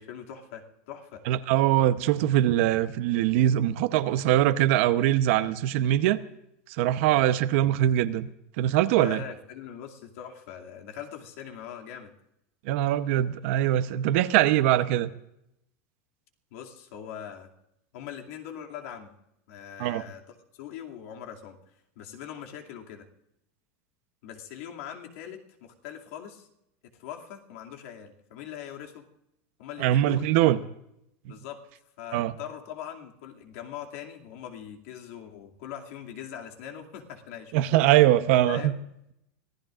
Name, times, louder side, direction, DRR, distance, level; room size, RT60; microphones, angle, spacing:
voice 1, 0.0-1.3 9.0-12.1 16.5-17.5 17.9-19.1 19.5-20.2 20.5-21.6 22.0-23.1 24.2-26.5 27.0-29.1 29.6-30.3 31.3-31.6 32.0-37.8 38.4-38.8, left 9 dB, 70° left, 2 dB, 2.4 m, -41 dB
voice 2, 1.3-6.2 6.8-8.3 8.6-9.2 12.6-15.1 19.8-20.0 29.8-30.6 32.1-32.3 37.5-38.7, right 13 dB, 60° right, 12 dB, 0.9 m, -22 dB
25.5 x 16.0 x 2.5 m, 0.81 s
supercardioid pair, 165°, 8 cm